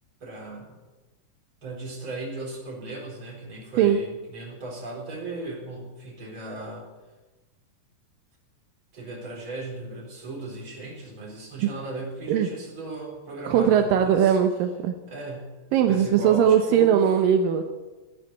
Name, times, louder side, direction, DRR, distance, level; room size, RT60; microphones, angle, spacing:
voice 1, 0.2-0.8 1.6-6.9 8.9-14.4 15.1-15.5 15.9-17.1, right 2 dB, 35° right, -1 dB, 4.7 m, -37 dB
voice 2, 13.5-15.0 15.7-17.6, right 8 dB, 80° right, 6 dB, 2.6 m, -20 dB
16.0 x 10.5 x 8.2 m, 1.2 s
omnidirectional pair, 3.9 m